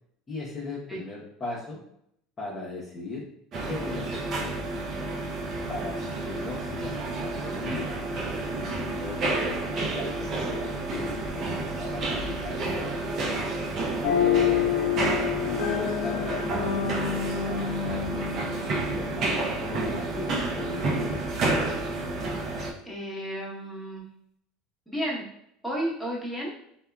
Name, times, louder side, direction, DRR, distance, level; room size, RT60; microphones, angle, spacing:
voice 1, 0.3-1.8 2.4-3.3 3.6-4.7 5.7-8.0 8.7-9.6 9.9-12.9 14.1-14.7 15.5-21.1, left 2 dB, 30° left, -4 dB, 0.7 m, -38 dB
sound 1, 3.5-22.7, right 2 dB, 45° right, 0.6 m, -30 dB
sound 2, 14.0-19.5, left 9 dB, 70° left, 0.3 m, -28 dB
voice 2, 22.8-24.1 24.9-25.2 25.6-26.5, equal, ahead, -5 dB, 0.9 m, -32 dB
3.4 x 2.1 x 2.2 m, 0.73 s
supercardioid pair, 105°, 0 cm